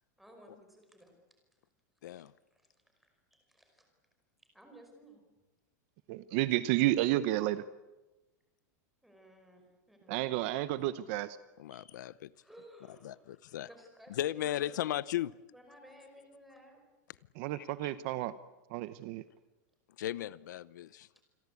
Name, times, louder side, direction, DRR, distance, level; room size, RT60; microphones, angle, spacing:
voice 1, 0.2-1.1 2.1-2.7 3.0-3.9 4.5-5.2 9.0-10.2 11.7-11.9 12.3-13.4 13.7-14.9 15.5-16.8, equal, ahead, 3 dB, 5.4 m, -57 dB
voice 2, 6.1-7.6 10.1-11.4 17.4-18.4 18.7-19.2, right 15 dB, 40° right, 14 dB, 0.8 m, -31 dB
voice 3, 11.6-12.3 13.0-13.7 14.2-15.3 17.5-17.6 20.0-21.1, left 12 dB, 80° left, 18 dB, 0.9 m, -36 dB
28.0 x 22.5 x 8.5 m, 1.1 s
supercardioid pair, 175°, 10 cm